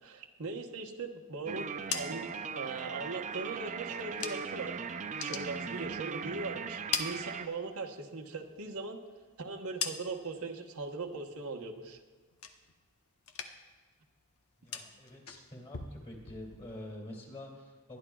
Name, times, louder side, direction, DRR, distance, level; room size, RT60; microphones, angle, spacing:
voice 1, 0.0-4.8 5.2-9.0 9.4-12.0, right 3 dB, 85° right, 2 dB, 1.2 m, -40 dB
sound 1, 1.5-7.5, right 6 dB, 35° right, 0.4 m, -39 dB
sound 2, 1.6-4.7 5.0-6.3 6.6-7.9 8.3-10.4 10.8-11.3 11.6-12.9 13.2-13.8 14.1-16.9, left 6 dB, 80° left, 0.9 m, -42 dB
voice 2, 14.6-18.0, left 1 dB, 30° left, -2 dB, 2.7 m, -47 dB
23.5 x 10.5 x 2.4 m, 1.4 s
head